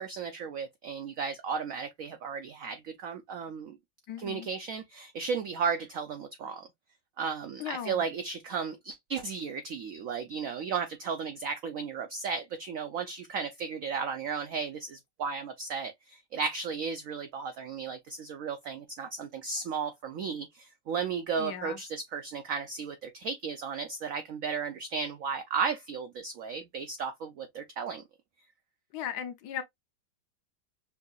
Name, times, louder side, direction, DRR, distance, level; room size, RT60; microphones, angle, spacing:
voice 1, 0.0-3.8 4.2-6.7 7.2-28.0, right 6 dB, 85° right, 0.7 m, -34 dB
voice 2, 4.1-4.5 7.6-8.0 21.4-21.8 28.9-29.6, left 9 dB, 70° left, 1.2 m, -37 dB
5.6 x 2.6 x 2.3 m
omnidirectional pair, 2.0 m